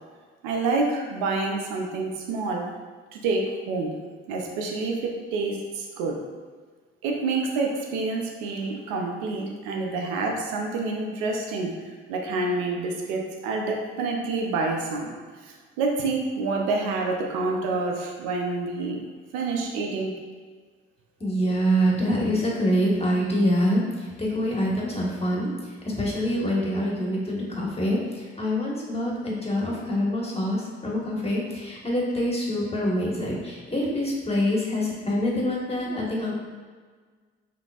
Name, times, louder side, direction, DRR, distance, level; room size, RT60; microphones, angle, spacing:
voice 1, 0.4-2.7 3.1-3.9 4.3-6.2 7.0-11.7 12.1-15.1 15.4-19.0 19.3-20.1, right 3 dB, 80° right, 1 dB, 0.7 m, -28 dB
voice 2, 21.2-25.5 25.8-36.3, equal, 20° left, -4 dB, 1.4 m, -25 dB
5.9 x 2.7 x 2.4 m, 1.5 s
hypercardioid pair, 50°, 30 cm